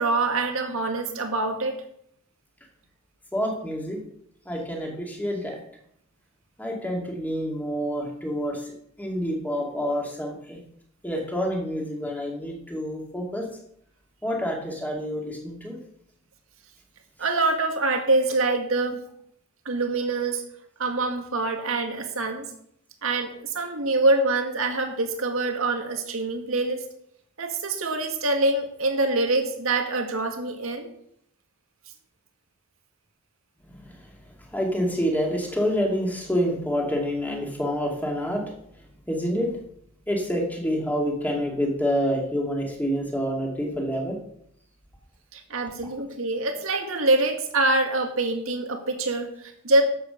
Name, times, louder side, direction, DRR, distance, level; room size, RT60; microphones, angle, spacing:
voice 1, 0.0-1.8 17.2-19.0 19.7-20.4 20.8-22.5 23.0-26.8 27.4-30.9 45.3-49.8, right 2 dB, 75° right, 4 dB, 1.9 m, -25 dB
voice 2, 3.3-4.0 4.4-5.6 6.6-8.7 9.0-10.6 11.0-13.5 14.2-15.8 33.6-34.0 34.5-38.4 39.1-39.5 40.1-44.2 45.8-45.9, equal, 10° left, -1 dB, 2.4 m, -27 dB
12.5 x 7.9 x 5.2 m, 0.71 s
head